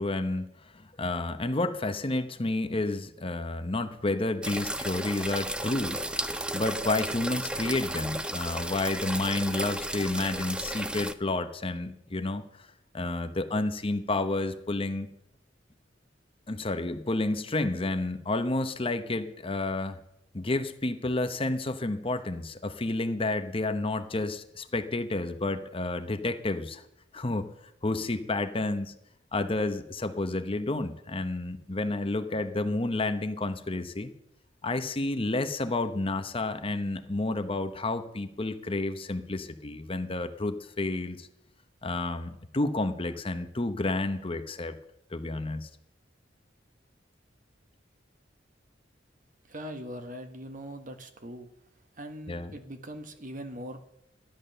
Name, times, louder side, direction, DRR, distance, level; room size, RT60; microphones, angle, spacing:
voice 1, 0.0-6.2 6.5-12.7 12.9-15.1 16.5-20.0 20.3-26.8 27.1-27.5 27.8-28.9 29.3-34.1 34.6-41.3 41.8-44.8 45.1-45.7 52.3-52.5, left 2 dB, 30° left, 9 dB, 0.9 m, -30 dB
sound 1, 4.4-11.1, right 1 dB, 5° right, 0.5 m, -33 dB
voice 2, 49.5-51.5 52.0-53.9, equal, 45° right, 7 dB, 1.3 m, -41 dB
13.5 x 10.5 x 6.7 m, 0.79 s
head